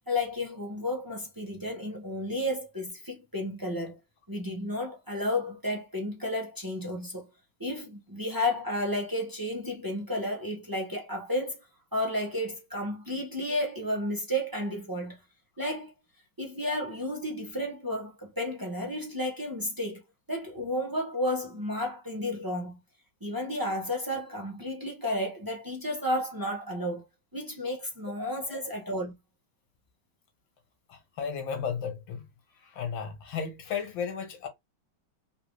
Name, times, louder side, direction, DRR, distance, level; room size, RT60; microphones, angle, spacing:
voice 1, 0.1-4.0 4.3-7.3 7.6-11.6 11.9-15.2 15.6-15.9 16.4-20.0 20.3-22.8 23.2-27.1 27.3-29.1, left 1 dB, 30° right, 0.4 m, -32 dB
voice 2, 30.9-32.3 32.5-34.5, left 6 dB, 75° left, 1.6 m, -34 dB
3.8 x 2.6 x 3.0 m
omnidirectional pair, 2.1 m